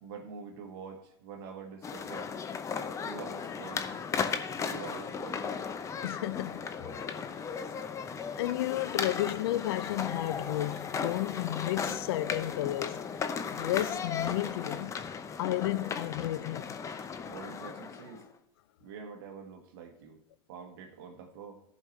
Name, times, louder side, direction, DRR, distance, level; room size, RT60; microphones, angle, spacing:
voice 1, 0.0-2.3 3.0-4.0 4.5-5.7 17.2-18.3 18.8-20.2 20.5-21.6, right 6 dB, 65° right, 1.4 m, -46 dB
sound 1, 1.8-18.3, left 6 dB, 25° left, 0.7 m, -36 dB
voice 2, 6.0-7.0 8.4-13.1 13.5-15.0 15.4-16.8, left 15 dB, 70° left, 0.5 m, -32 dB
14.5 x 5.3 x 3.2 m
hypercardioid pair, 115°, 13 cm